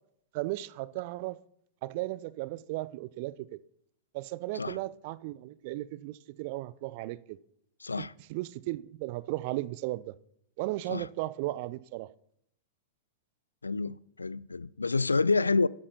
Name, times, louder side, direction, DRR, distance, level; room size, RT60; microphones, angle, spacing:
voice 1, 0.3-1.4 1.8-3.6 4.1-7.4 8.0-10.1 10.6-12.1, right 18 dB, 50° right, 0.5 m, -36 dB
voice 2, 7.8-8.1 10.9-11.0 13.6-15.7, left 3 dB, 80° left, 0.3 m, -28 dB
12.5 x 11.0 x 4.2 m
figure-of-eight pair, 90°, 0 cm